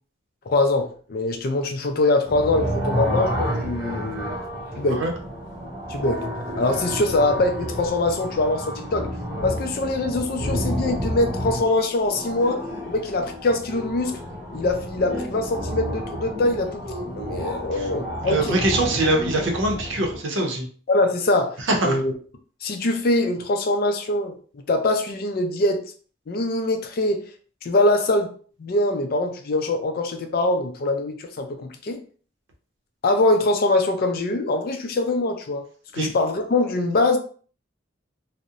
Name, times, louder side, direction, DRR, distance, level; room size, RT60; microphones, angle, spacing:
voice 1, 0.5-4.4 4.8-5.0 5.9-6.2 6.6-9.1 9.4-14.2 14.5-18.6 20.9-21.6 21.8-22.1 22.6-24.3 24.7-25.8 26.3-27.2 27.6-28.3 28.6-32.0 33.0-35.6 35.9-37.2, left 2 dB, 50° left, 6 dB, 0.4 m, -23 dB
sound 1, 2.3-20.2, equal, 10° right, 0.9 m, -30 dB
voice 2, 18.2-20.7 21.6-22.0 35.9-36.1, right 2 dB, 70° right, 1 dB, 0.6 m, -23 dB
2.7 x 2.0 x 2.4 m, 0.43 s
head